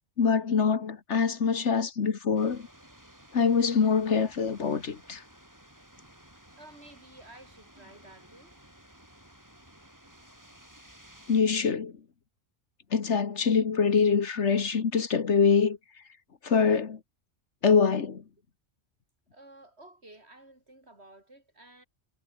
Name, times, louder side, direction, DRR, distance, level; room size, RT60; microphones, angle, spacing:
voice 1, 0.2-2.7 3.3-5.2 11.3-12.0 12.9-15.8 16.4-17.0 17.6-18.2, left 5 dB, 65° left, 1.8 m, -24 dB
sound 1, 2.4-11.4, equal, 15° right, 6.1 m, -55 dB
voice 2, 6.6-8.6 19.3-21.9, right 2 dB, 55° right, 5.9 m, -52 dB
omnidirectional pair, 1.3 m